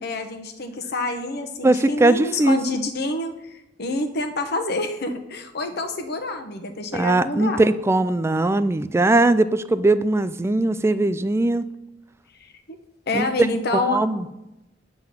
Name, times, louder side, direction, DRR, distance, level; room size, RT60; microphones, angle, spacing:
voice 1, 0.0-7.7 12.4-12.8 13.1-14.0, left 2 dB, 55° left, 6 dB, 1.0 m, -27 dB
voice 2, 1.6-2.6 6.9-11.6 13.1-13.3 13.7-14.2, right 2 dB, 15° right, 14 dB, 0.3 m, -20 dB
9.1 x 3.8 x 7.1 m, 0.91 s
head